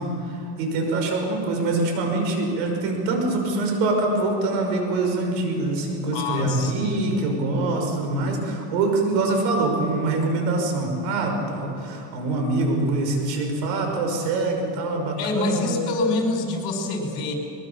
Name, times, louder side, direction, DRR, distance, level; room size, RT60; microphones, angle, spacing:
voice 1, 0.0-15.8, right 2 dB, 85° right, 3 dB, 5.9 m, -24 dB
voice 2, 6.1-7.1 15.2-17.4, left 3 dB, 60° left, 3 dB, 5.5 m, -26 dB
22.0 x 20.5 x 7.3 m, 2.8 s
cardioid pair, 140°, 49 cm